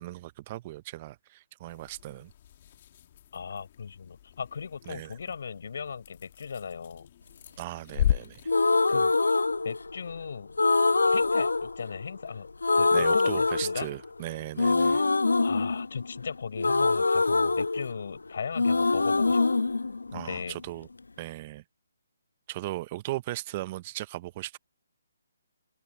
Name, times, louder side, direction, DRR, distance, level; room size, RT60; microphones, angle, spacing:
voice 1, 0.0-2.3 4.9-5.2 7.6-8.4 12.9-15.1 20.1-20.9 21.2-21.6 22.5-24.6, right 16 dB, 30° right, 0.7 m, -37 dB
sound 1, 1.7-8.6, left 11 dB, 40° left, 1.8 m, -35 dB
voice 2, 3.3-7.1 8.9-9.1 9.6-10.6 11.1-13.9 15.4-19.4 20.1-20.6, left 6 dB, 60° left, 6.5 m, -37 dB
sound 2, 8.5-10.1 10.6-12.3 12.6-14.2 14.6-18.3 18.6-20.6, left 3 dB, 85° left, 0.9 m, -24 dB
figure-of-eight pair, 145°, 0 cm